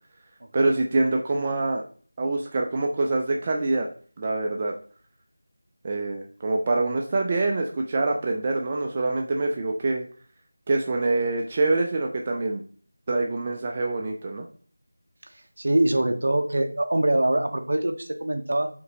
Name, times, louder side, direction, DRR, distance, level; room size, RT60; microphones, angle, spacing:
voice 1, 0.5-1.8 2.2-3.9 4.2-4.7 5.8-10.1 10.7-12.6 13.1-14.5, right 2 dB, 25° right, 1 dB, 0.4 m, -25 dB
voice 2, 15.6-18.7, right 1 dB, 60° right, 6 dB, 0.7 m, -23 dB
5.1 x 3.0 x 2.9 m, 0.44 s
figure-of-eight pair, 175°, 0 cm